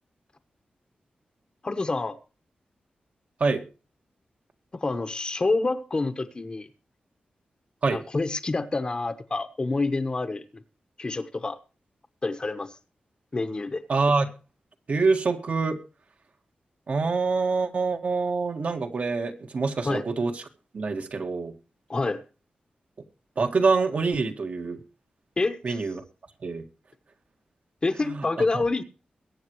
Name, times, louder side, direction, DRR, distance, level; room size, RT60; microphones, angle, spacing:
voice 1, 1.6-2.2 4.7-6.7 7.9-10.4 11.0-11.6 12.2-12.7 13.3-13.8 19.8-20.0 21.9-22.2 25.4-25.8 27.8-28.8, left 3 dB, 30° left, 9 dB, 1.1 m, -27 dB
voice 2, 13.9-14.3 14.9-15.8 16.9-20.4 20.7-21.5 23.4-24.8 25.6-26.0 26.4-26.6 28.0-28.4, right 4 dB, 50° right, 5 dB, 1.7 m, -25 dB
22.5 x 9.1 x 3.1 m, 0.35 s
wide cardioid pair, 160°, 3 cm